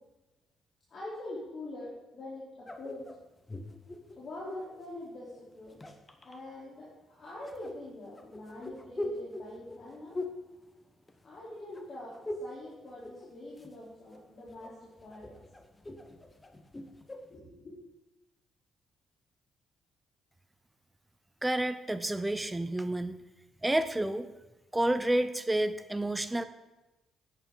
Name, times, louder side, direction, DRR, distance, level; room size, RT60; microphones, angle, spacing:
voice 1, 0.9-3.1 4.2-5.8 6.2-10.2 11.2-12.1 12.4-15.4 17.3-17.8, left 1 dB, 50° left, -7 dB, 3.6 m, -44 dB
sound 1, 2.6-4.8 5.6-6.4 7.5-11.5 11.7-12.6 12.9-13.8 14.1-17.3, left 1 dB, 20° left, 1.1 m, -42 dB
voice 2, 21.4-23.2 23.6-24.3 24.7-26.4, right 1 dB, 10° right, 11 dB, 0.7 m, -29 dB
11.0 x 9.5 x 3.9 m, 1.0 s
cardioid pair, 90°, 0 cm